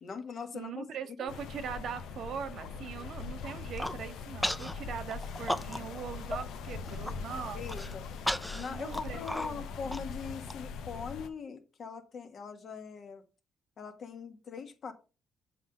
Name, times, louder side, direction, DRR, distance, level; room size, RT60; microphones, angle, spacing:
voice 1, 0.0-0.8 1.2-1.3 7.5-8.0 8.5-13.2 13.8-14.9, left 5 dB, 55° left, 1.4 m, -41 dB
voice 2, 0.5-7.7 8.5-9.6, right 7 dB, 70° right, 0.9 m, -41 dB
sound 1, 1.3-11.3, left 5 dB, 85° left, 0.7 m, -41 dB
Human voice, 3.5-4.0 4.4-4.7 5.1-6.0 6.3-6.4 6.8-7.1 7.7-10.5, left 1 dB, 5° left, 0.6 m, -35 dB
7.3 x 3.9 x 5.5 m
cardioid pair, 90°, 0 cm